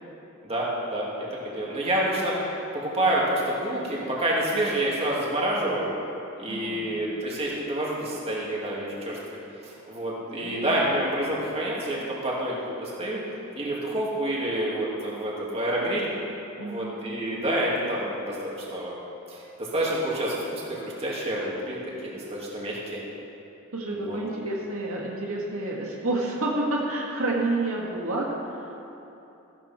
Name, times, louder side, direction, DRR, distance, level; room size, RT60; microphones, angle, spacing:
voice 1, 0.4-2.4 2.7-5.9 6.4-9.2 9.6-13.2 13.5-16.1 16.6-19.0 19.3-23.0 23.9-24.2, right 1 dB, 30° right, -5 dB, 2.6 m, -28 dB
voice 2, 6.5-6.9 10.4-10.8 16.6-16.9 23.7-28.3, right 2 dB, 80° right, -3 dB, 1.9 m, -29 dB
14.5 x 12.0 x 4.5 m, 3.0 s
head